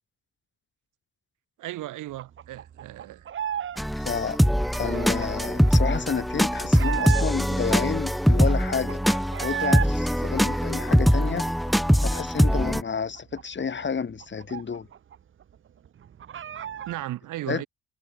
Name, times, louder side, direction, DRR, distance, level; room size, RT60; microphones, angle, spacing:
voice 1, 1.6-3.3 16.9-17.7, right 15 dB, 90° right, 4.5 m, -35 dB
sound 1, 2.2-3.8 4.1-7.6 8.0-8.1 8.3-9.9 10.2-12.0 12.3-12.4 12.7-15.2 15.4-15.5 15.9-17.0, right 9 dB, 40° right, 0.7 m, -34 dB
sound 2, 3.8-12.8, equal, ahead, 0.3 m, -22 dB
voice 2, 4.0-4.4 4.7-9.0 9.4-11.5 12.0-14.9 17.5-17.6, left 6 dB, 40° left, 2.5 m, -30 dB
cardioid pair, 90°, 30 cm